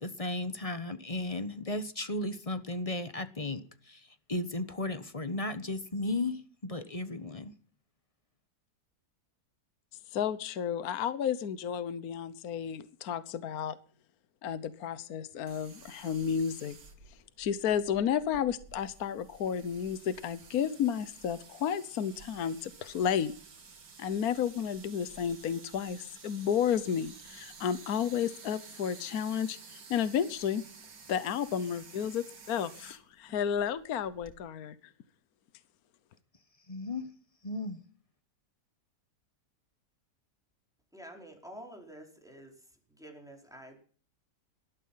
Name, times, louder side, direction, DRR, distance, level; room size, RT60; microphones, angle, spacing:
voice 1, 0.0-7.5 36.7-37.1 37.4-37.8, left 2 dB, 25° left, 1.1 m, -35 dB
voice 2, 10.1-13.7 14.4-16.8 17.4-23.3 24.0-30.6 31.1-34.8, left 8 dB, 65° left, 1.4 m, -32 dB
sound 1, 15.5-34.4, right 5 dB, 85° right, 2.7 m, -52 dB
voice 3, 40.9-42.5 43.0-43.8, equal, ahead, 4.6 m, -48 dB
18.5 x 13.0 x 5.7 m
omnidirectional pair, 1.8 m